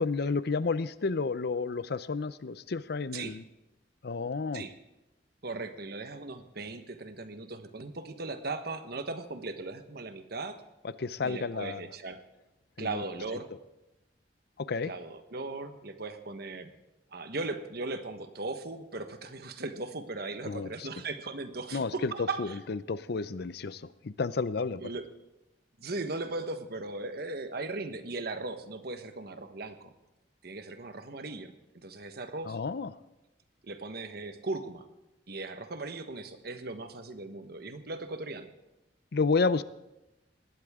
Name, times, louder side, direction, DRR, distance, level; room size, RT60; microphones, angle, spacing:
voice 1, 0.0-3.4 4.0-4.6 11.0-11.8 12.8-13.0 14.6-14.9 20.5-20.7 21.7-24.9 32.5-32.9 39.1-39.6, left 4 dB, 65° left, 16 dB, 0.6 m, -31 dB
voice 2, 5.4-10.6 11.2-12.2 12.8-13.5 14.8-16.7 17.1-22.6 24.8-25.0 25.8-29.9 30.4-32.6 33.6-34.9 35.3-38.5, right 3 dB, 60° right, 9 dB, 1.2 m, -38 dB
20.0 x 16.5 x 3.7 m, 0.96 s
head